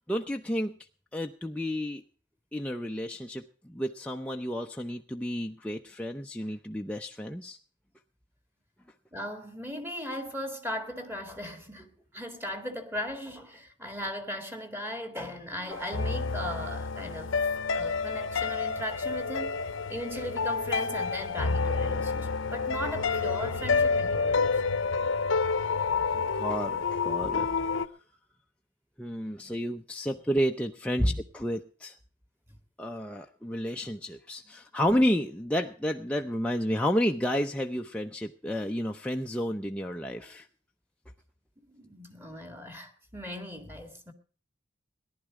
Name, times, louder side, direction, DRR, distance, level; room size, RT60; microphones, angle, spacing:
voice 1, 0.1-0.8 1.1-2.0 2.5-7.6 26.1-27.5 29.0-32.0 32.8-40.5, equal, 5° left, 0.6 m, -31 dB
voice 2, 9.1-17.3 17.7-19.5 19.9-24.6 31.0-31.2 41.7-44.1, equal, 10° right, 2.0 m, -37 dB
sound 1, 15.7-27.9, left 4 dB, 70° left, 0.8 m, -29 dB
18.0 x 11.5 x 4.8 m
head